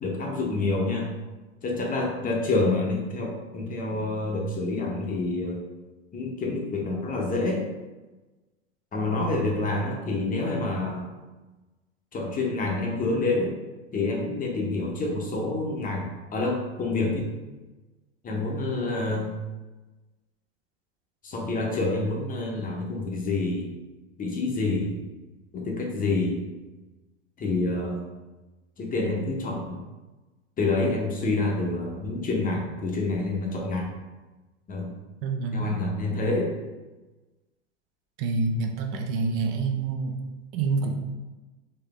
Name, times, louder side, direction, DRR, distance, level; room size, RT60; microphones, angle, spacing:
voice 1, 0.0-1.1 1.6-5.6 6.1-7.6 8.9-11.1 12.1-13.5 13.9-17.3 18.2-19.3 21.2-23.7 24.2-25.0 25.5-26.5 27.4-28.0 28.8-29.8 30.6-33.9 34.7-34.9 35.5-36.5, left 2 dB, 25° left, 0 dB, 0.8 m, -27 dB
voice 2, 35.2-35.8 38.2-40.2 40.5-41.0, right 4 dB, 50° right, 3 dB, 0.6 m, -27 dB
4.1 x 2.6 x 3.3 m, 1.2 s
hypercardioid pair, 105°, 36 cm